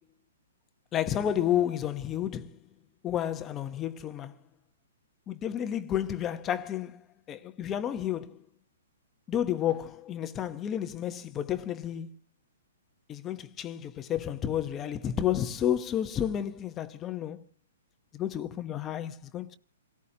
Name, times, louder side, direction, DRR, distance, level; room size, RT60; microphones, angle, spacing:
voice 1, 0.9-2.6 3.0-4.4 5.3-8.4 9.3-12.1 13.1-17.4 18.1-19.6, left 10 dB, 20° left, 0.9 m, -31 dB
27.5 x 17.5 x 2.8 m
hypercardioid pair, 150°, 0 cm